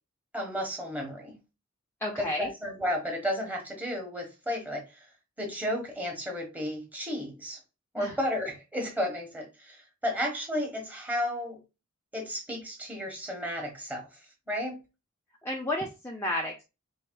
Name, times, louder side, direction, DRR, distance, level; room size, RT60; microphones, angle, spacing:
voice 1, 0.3-1.3 2.2-5.1 5.4-7.6 7.9-11.6 12.1-14.0 14.5-14.8, equal, 5° right, 1.2 m, -33 dB
voice 2, 2.0-2.5 8.0-8.1 15.4-16.6, left 1 dB, 10° left, 0.5 m, -32 dB
4.7 x 3.4 x 2.2 m
head